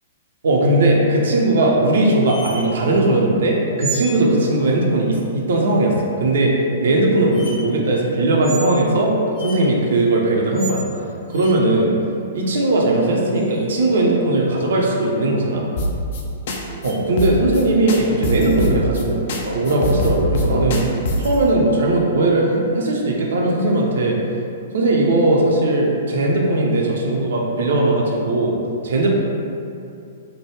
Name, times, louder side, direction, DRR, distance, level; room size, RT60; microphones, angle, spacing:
voice 1, 0.4-10.8 11.3-11.9 12.3-15.6 16.8-20.8 21.2-24.2 24.7-28.5 28.8-29.1, right 2 dB, 60° right, -2 dB, 0.4 m, -18 dB
sound 1, 2.3-2.6 3.8-4.2 6.4-6.5 7.3-7.5 8.4-8.7 9.4-9.6 10.5-10.8 11.3-11.5 13.4-14.0 16.9-17.0, right 4 dB, 30° left, 1.0 m, -31 dB
sound 2, 15.8-16.2 16.5-16.6 16.8-16.9 17.2-17.6 17.9-19.0 19.3-19.4 19.7-21.4, left 1 dB, 50° left, 0.4 m, -22 dB
3.2 x 2.1 x 3.1 m, 2.7 s
figure-of-eight pair, 110°, 0 cm